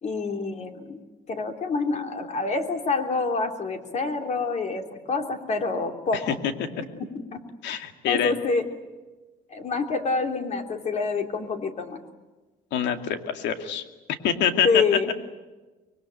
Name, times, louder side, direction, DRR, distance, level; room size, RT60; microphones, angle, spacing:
voice 1, 0.0-1.0 1.3-6.2 7.0-7.4 8.1-8.7 9.5-12.0 14.6-15.1, left 4 dB, 40° left, 5 dB, 3.1 m, -27 dB
voice 2, 7.6-8.3 12.7-13.8 14.2-14.8, left 8 dB, 75° left, 7 dB, 2.4 m, -25 dB
24.5 x 22.0 x 9.0 m, 1.2 s
cardioid pair, 135°, 18 cm